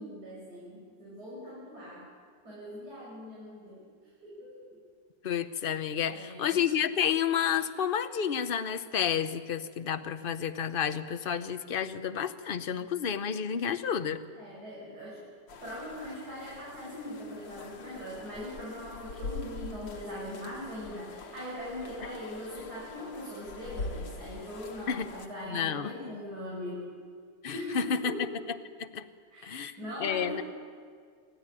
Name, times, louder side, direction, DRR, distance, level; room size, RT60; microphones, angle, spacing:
voice 1, 0.0-2.1 2.4-3.8 4.2-4.6 6.1-6.6 14.3-15.2 15.6-26.9 27.5-28.2 29.3-30.4, equal, 60° right, -6 dB, 6.6 m, -41 dB
voice 2, 5.2-14.2 24.9-25.1 25.5-26.2 27.4-28.1 28.8-29.1 29.4-29.7 30.0-30.4, left 8 dB, 45° left, 10 dB, 0.8 m, -30 dB
sound 1, 15.5-25.3, left 4 dB, 85° left, 2.1 m, -44 dB
27.0 x 14.0 x 9.8 m, 2.1 s
omnidirectional pair, 1.9 m